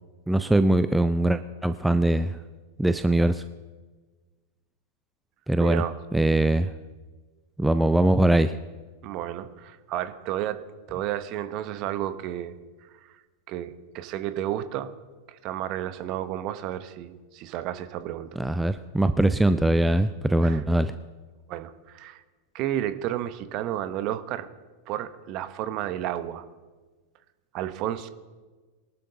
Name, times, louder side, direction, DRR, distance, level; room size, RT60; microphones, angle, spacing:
voice 1, 0.3-2.4 2.8-3.4 5.5-5.8 6.1-6.7 7.6-8.6 18.4-20.9, right 1 dB, 5° right, 11 dB, 0.5 m, -22 dB
voice 2, 5.6-6.0 9.0-12.5 13.0-13.1 13.5-14.9 15.3-18.4 20.4-20.6 21.5-22.2 22.5-24.5 24.9-26.4 27.5-28.1, right 12 dB, 40° right, 11 dB, 1.0 m, -32 dB
23.0 x 12.0 x 2.8 m, 1.3 s
figure-of-eight pair, 90°, 0 cm